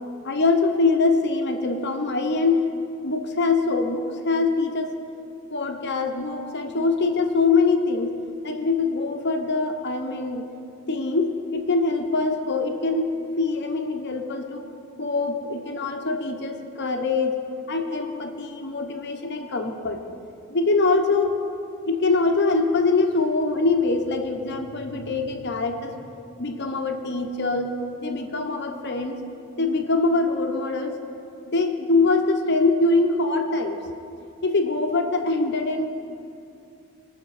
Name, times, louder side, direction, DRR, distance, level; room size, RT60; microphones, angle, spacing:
voice 1, 0.2-2.7 3.0-4.9 5.5-8.2 8.4-10.5 10.9-14.7 15.0-17.3 17.7-20.0 20.5-21.3 21.9-26.0 26.4-27.7 28.0-29.2 29.6-31.0 31.5-33.8 34.4-35.9, left 3 dB, 50° left, 4 dB, 0.9 m, -23 dB
20.5 x 6.8 x 4.9 m, 2.5 s
head